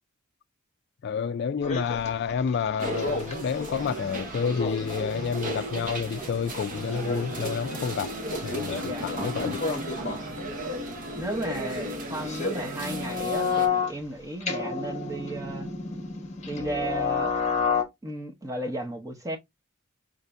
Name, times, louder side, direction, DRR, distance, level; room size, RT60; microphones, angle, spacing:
voice 1, 1.0-8.1 8.4-9.6, left 6 dB, 50° left, 0.3 m, -29 dB
sound 1, 1.6-3.5 3.9-4.0 4.4-6.5 6.8-7.4 8.2-8.8 9.4-10.4 12.2-14.0 14.4-17.8, left 5 dB, 35° left, 1.0 m, -30 dB
sound 2, 2.8-13.7, right 1 dB, 40° right, 0.9 m, -36 dB
sound 3, 6.5-13.9, left 1 dB, 80° right, 1.5 m, -40 dB
voice 2, 8.8-9.1 11.1-15.7 16.5-17.4 18.0-19.4, right 1 dB, 15° right, 0.8 m, -34 dB
5.0 x 2.7 x 3.4 m
head